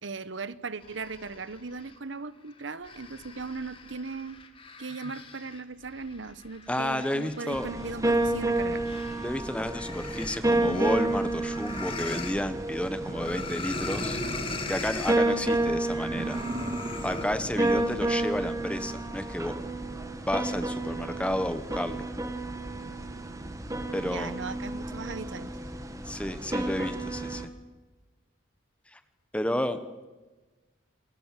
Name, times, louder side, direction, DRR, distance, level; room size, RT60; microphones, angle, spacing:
voice 1, 0.0-4.4 4.8-8.9 24.0-25.5, right 4 dB, 65° right, 15 dB, 1.1 m, -38 dB
sound 1, 0.8-2.0 2.5-9.3 9.6-12.4 13.1-15.2 16.1-17.4, left 3 dB, 25° left, 2.2 m, -40 dB
voice 2, 6.7-7.7 9.2-14.2 14.7-16.4 17.0-19.5 20.3-22.0 23.9-24.3 26.0-27.5 28.9-29.0 29.3-29.8, left 1 dB, 5° left, 10 dB, 1.2 m, -31 dB
sound 2, 7.5-27.5, right 2 dB, 15° right, 1.6 m, -31 dB
sound 3, 10.4-11.8 12.2-12.3 12.6-12.7 13.0-14.9 15.2-15.5 16.0-18.0, right 1 dB, 35° right, 1.1 m, -40 dB
28.0 x 20.0 x 7.6 m, 1.2 s
head